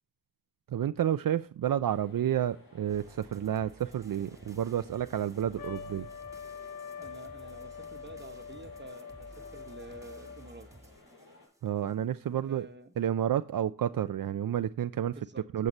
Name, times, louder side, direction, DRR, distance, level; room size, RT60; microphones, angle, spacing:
voice 1, 0.7-6.1 11.6-12.7 13.0-15.2 15.5-15.7, right 10 dB, 70° right, 0.5 m, -30 dB
sound 1, 1.9-11.5, left 2 dB, 85° left, 5.2 m, -58 dB
sound 2, 2.9-12.0, right 1 dB, 10° right, 1.6 m, -54 dB
Trumpet, 5.6-10.6, left 7 dB, 70° left, 0.6 m, -44 dB
voice 2, 7.0-10.7 12.3-12.9 15.0-15.5, right 2 dB, 30° right, 1.1 m, -49 dB
8.0 x 7.5 x 4.0 m
cardioid pair, 45°, 35 cm